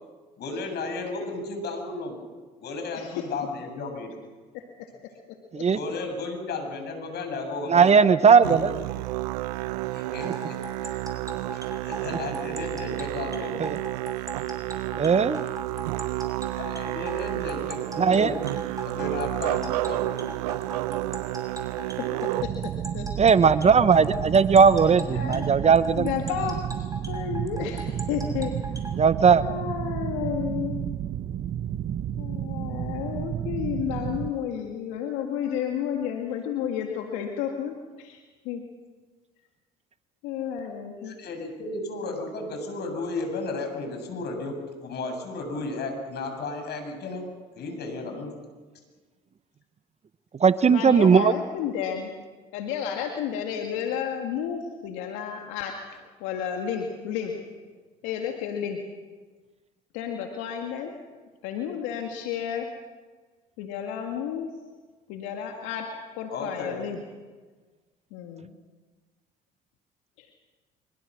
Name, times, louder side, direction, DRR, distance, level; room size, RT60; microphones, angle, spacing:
voice 1, 0.4-2.2 2.6-4.1 5.7-8.1 8.5-8.7 9.9-10.6 11.8-13.6 16.6-18.4 18.8-20.2 40.9-44.5 44.8-47.2 47.5-48.3 66.3-66.9, left 3 dB, 55° left, 4 dB, 7.2 m, -34 dB
voice 2, 2.9-3.3 4.5-4.9 5.5-5.7 22.0-23.1 25.1-25.5 26.0-28.8 29.4-30.8 32.2-38.6 40.2-41.2 50.7-52.1 52.5-55.8 56.2-57.4 58.0-58.8 59.9-60.9 61.4-62.7 63.6-64.5 65.1-67.0 68.1-68.6 70.2-70.3, left 8 dB, 75° left, 3 dB, 2.0 m, -32 dB
voice 3, 7.7-8.7 13.6-13.8 15.0-15.4 18.0-18.3 23.2-26.1 29.0-29.4 50.4-51.3, right 6 dB, 35° right, 14 dB, 1.0 m, -18 dB
Musical instrument, 8.4-22.4, right 18 dB, 85° right, 0.7 m, -31 dB
sound 1, 10.2-28.9, right 1 dB, 15° right, 6.2 m, -38 dB
sound 2, 22.4-34.3, right 10 dB, 50° right, 1.2 m, -31 dB
25.0 x 23.0 x 6.3 m, 1.4 s
hypercardioid pair, 65°, 20 cm